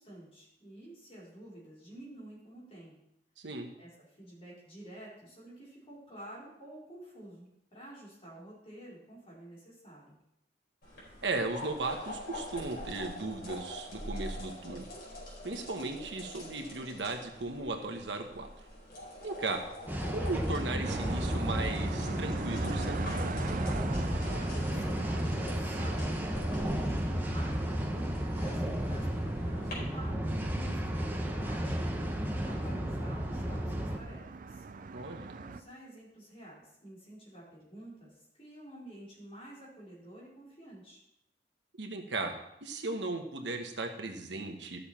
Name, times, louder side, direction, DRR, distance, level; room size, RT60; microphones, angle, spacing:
voice 1, 0.0-3.0 3.8-10.2 24.3-35.0 35.4-41.0, right 1 dB, 35° left, -7 dB, 4.5 m, -50 dB
voice 2, 3.4-3.7 11.2-14.9 15.4-18.5 19.2-19.6 20.1-23.4 34.9-35.3 41.8-42.4 42.6-44.8, right 3 dB, 80° right, 4 dB, 1.2 m, -36 dB
sound 1, 10.8-29.7, left 1 dB, 60° left, 4.1 m, -45 dB
sound 2, 19.9-34.0, equal, 10° right, 1.0 m, -33 dB
sound 3, 20.8-35.6, right 4 dB, 50° right, 0.5 m, -43 dB
13.0 x 6.7 x 4.3 m, 0.81 s
head